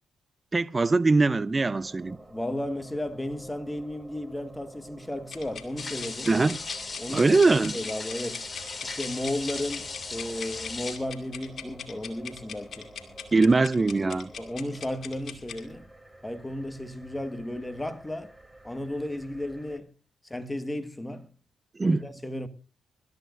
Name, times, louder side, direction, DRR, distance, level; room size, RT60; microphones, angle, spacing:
voice 1, 0.5-2.2 6.3-6.6 7.1-7.7 13.3-14.3 21.8-22.0, right 3 dB, 30° right, 0.6 m, -22 dB
sound 1, 1.4-19.8, right 1 dB, 15° right, 3.3 m, -50 dB
voice 2, 2.3-6.3 7.0-8.4 8.8-12.9 14.4-15.8 16.2-18.3 18.6-19.9 20.2-21.3 21.8-22.5, left 1 dB, 15° left, 1.6 m, -34 dB
sound 2, 5.3-15.6, left 7 dB, 60° left, 2.4 m, -42 dB
sound 3, 5.8-11.0, left 3 dB, 35° left, 2.9 m, -37 dB
25.0 x 13.0 x 2.6 m
supercardioid pair, 55°, 0 cm